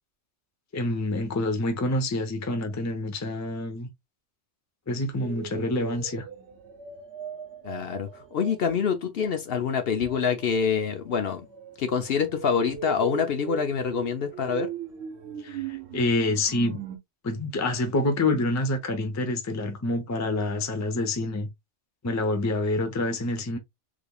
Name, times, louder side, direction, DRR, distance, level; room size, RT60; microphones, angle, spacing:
voice 1, 0.7-3.9 4.9-6.3 15.4-16.8 17.2-21.5 22.0-23.6, left 2 dB, 20° left, 0.5 m, -27 dB
sound 1, 5.2-8.8 10.0-17.0, right 8 dB, 65° right, 1.0 m, -39 dB
voice 2, 7.6-11.4 11.8-14.7, left 6 dB, 60° left, 0.8 m, -26 dB
3.6 x 3.3 x 2.3 m
omnidirectional pair, 1.2 m